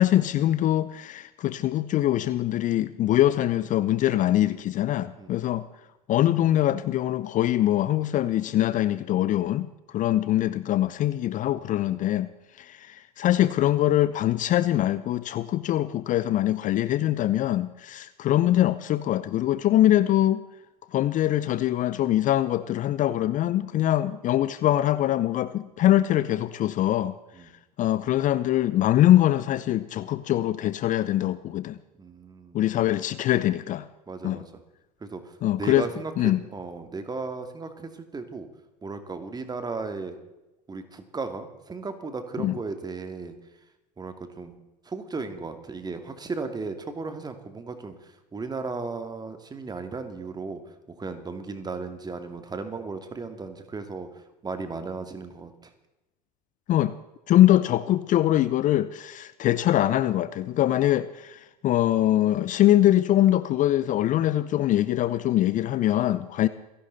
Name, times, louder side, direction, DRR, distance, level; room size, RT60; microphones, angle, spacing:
voice 1, 0.0-5.7 6.1-9.7 9.9-12.3 12.6-20.4 20.9-27.2 27.8-31.8 32.5-33.9 34.2-34.4 35.4-35.9 36.2-36.4 42.4-42.6 56.7-56.9 57.3-66.5, left 13 dB, 40° left, 15 dB, 0.7 m, -23 dB
voice 2, 32.0-32.6 34.1-34.4 35.0-38.5 38.8-40.2 40.7-43.3 44.0-44.6 44.8-50.6 50.9-54.1 54.4-55.7, right 4 dB, 20° right, 8 dB, 2.5 m, -35 dB
28.0 x 11.5 x 4.1 m, 0.98 s
hypercardioid pair, 75°, 21 cm